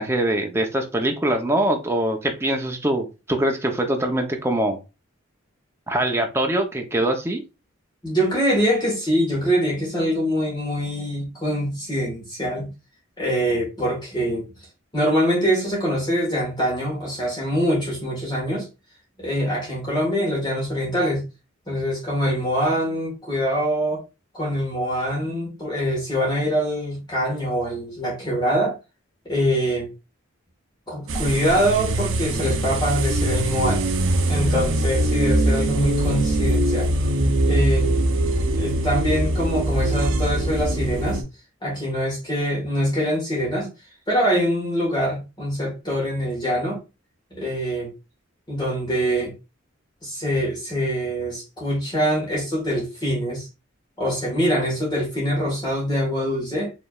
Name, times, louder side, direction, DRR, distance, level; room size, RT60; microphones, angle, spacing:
voice 1, 0.0-4.8 5.9-7.4, right 1 dB, 15° right, 0.7 m, -23 dB
voice 2, 8.0-12.7 13.2-14.5 14.9-18.7 19.2-21.3 21.7-24.0 24.3-28.8 29.3-29.9 30.9-33.8 34.3-37.0 37.4-38.1 38.6-41.2 41.6-43.7 44.1-46.8 47.3-47.9 48.5-49.3 50.0-53.5 54.0-56.7, equal, 20° left, 1.6 m, -24 dB
sound 1, 31.1-41.2, right 1 dB, 70° right, 0.7 m, -22 dB
4.9 x 3.2 x 2.4 m
head